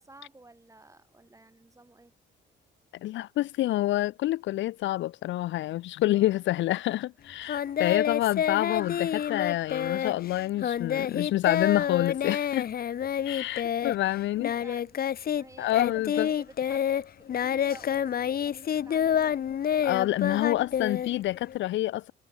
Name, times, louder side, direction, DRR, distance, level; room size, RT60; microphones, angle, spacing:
voice 1, 0.0-2.1 6.1-6.4 7.7-8.1 14.4-19.6 20.2-20.8, right 2 dB, 15° right, 5.2 m, -52 dB
voice 2, 3.0-12.7 13.3-14.5 15.6-16.3 19.8-22.1, left 15 dB, 70° left, 0.4 m, -28 dB
Singing, 7.5-15.4 15.7-21.6, left 9 dB, 50° left, 0.9 m, -28 dB
cardioid pair, 90°, 20 cm